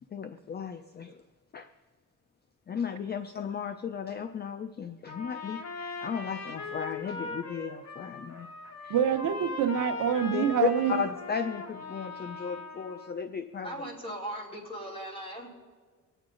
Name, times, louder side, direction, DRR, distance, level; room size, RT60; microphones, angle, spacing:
voice 1, 0.1-1.2 1.5-1.7 2.7-8.5 8.8-8.9 10.3-13.7, left 6 dB, 30° left, 8 dB, 0.5 m, -35 dB
Trumpet, 5.1-13.1, left 3 dB, 55° left, 1.7 m, -40 dB
voice 2, 8.9-11.0, right 8 dB, 80° right, 8 dB, 0.9 m, -26 dB
voice 3, 13.6-15.5, right 1 dB, 15° left, -3 dB, 2.9 m, -38 dB
24.0 x 9.0 x 3.8 m, 1.5 s
wide cardioid pair, 155°, 31 cm